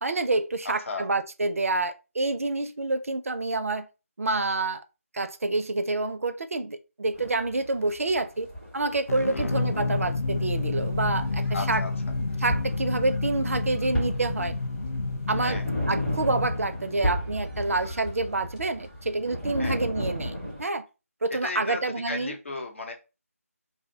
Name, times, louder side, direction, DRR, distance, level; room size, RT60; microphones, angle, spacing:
voice 1, 0.0-3.9 4.2-4.8 5.1-8.5 8.7-11.8 12.4-14.5 15.3-15.6 15.9-20.8 21.2-22.3, right 2 dB, 65° right, 0.4 m, -28 dB
voice 2, 0.6-1.0 9.3-9.6 11.5-11.9 15.4-15.7 19.6-19.8 21.4-22.9, left 3 dB, 55° left, 0.8 m, -35 dB
sound 1, 7.1-20.6, equal, 5° left, 0.8 m, -35 dB
sound 2, 9.1-17.8, left 3 dB, 75° left, 0.3 m, -30 dB
2.6 x 2.1 x 3.7 m
figure-of-eight pair, 160°, 8 cm